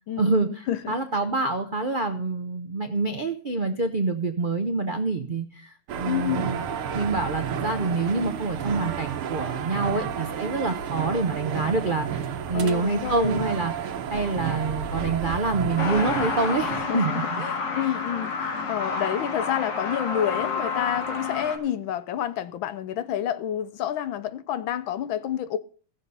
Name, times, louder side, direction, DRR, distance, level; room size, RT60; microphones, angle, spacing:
voice 1, 0.2-6.6 6.9-17.4, right 3 dB, 60° right, 0.5 m, -27 dB
sound 1, 5.9-16.9, right 7 dB, 85° right, 1.9 m, -31 dB
voice 2, 6.0-6.5 12.5-13.4 16.7-25.6, left 10 dB, 70° left, 1.4 m, -29 dB
Truck, 15.8-21.6, left 4 dB, 55° left, 2.6 m, -29 dB
16.0 x 7.1 x 5.5 m
omnidirectional pair, 2.4 m